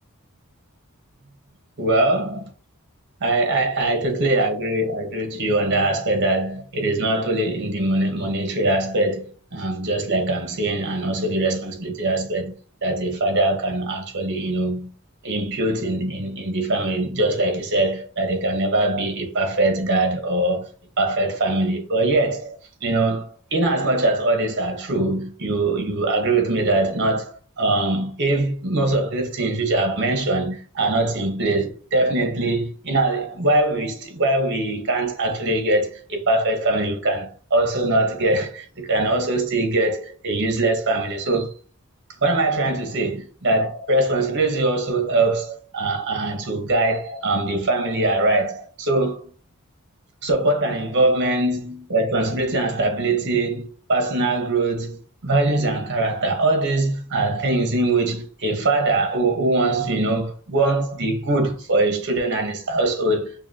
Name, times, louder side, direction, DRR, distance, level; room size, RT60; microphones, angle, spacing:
voice 1, 1.8-2.5 3.2-12.5 12.8-14.9 15.2-20.7 21.0-22.6 22.8-27.3 27.6-41.5 42.2-49.3 50.2-63.5, right 2 dB, 55° right, 1.1 m, -22 dB
5.6 x 2.3 x 2.8 m
head